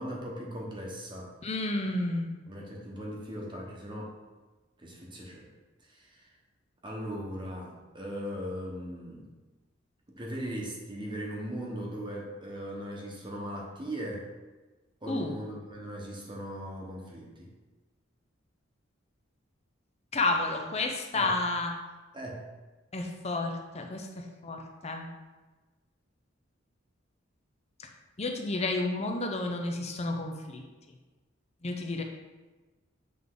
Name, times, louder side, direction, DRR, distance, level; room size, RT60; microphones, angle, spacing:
voice 1, 0.0-1.3 2.5-4.1 4.8-5.5 5.9-6.3 6.8-9.3 10.1-14.3 15.0-17.5 21.1-21.3 22.1-22.4, equal, 25° right, -2 dB, 1.1 m, -38 dB
voice 2, 1.4-2.4 15.1-15.4 20.1-21.7 22.9-25.1 28.2-30.6 31.6-32.0, left 2 dB, 35° left, 3 dB, 0.7 m, -31 dB
7.7 x 3.7 x 3.8 m, 1.2 s
head